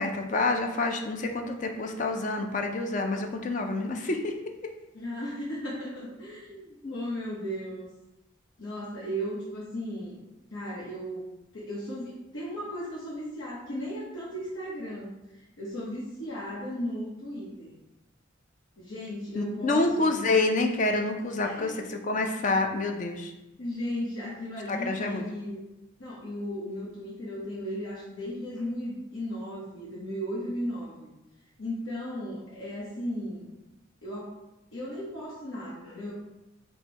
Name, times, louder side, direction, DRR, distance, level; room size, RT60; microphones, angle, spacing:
voice 1, 0.0-4.3 6.8-6.9 19.4-23.3 24.7-25.3, left 2 dB, 40° left, 4 dB, 0.4 m, -27 dB
voice 2, 4.9-7.9 8.6-10.2 10.5-11.3 11.5-17.7 18.8-20.1 21.4-21.9 23.6-25.6 26.0-31.1 31.6-33.6 34.0-34.4 34.7-36.1, equal, 80° left, -7 dB, 0.9 m, -36 dB
4.3 x 2.2 x 4.4 m, 0.97 s
head